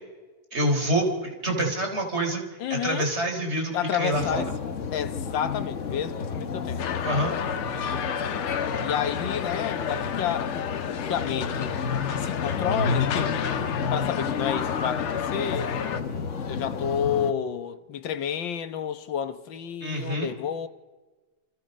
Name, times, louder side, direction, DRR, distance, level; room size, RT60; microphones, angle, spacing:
voice 1, 0.5-2.4 2.7-4.4 7.0-7.4 19.8-20.3, right 1 dB, 30° right, 4.2 m, -26 dB
voice 2, 2.6-3.1 3.7-4.5 4.9-6.9 8.8-11.8 12.2-13.4 13.9-20.7, left 9 dB, 65° left, 1.7 m, -30 dB
sound 1, 4.1-17.3, left 5 dB, 45° left, 1.1 m, -31 dB
sound 2, 6.8-16.0, left 7 dB, 80° left, 2.2 m, -31 dB
28.0 x 26.5 x 5.4 m
omnidirectional pair, 2.4 m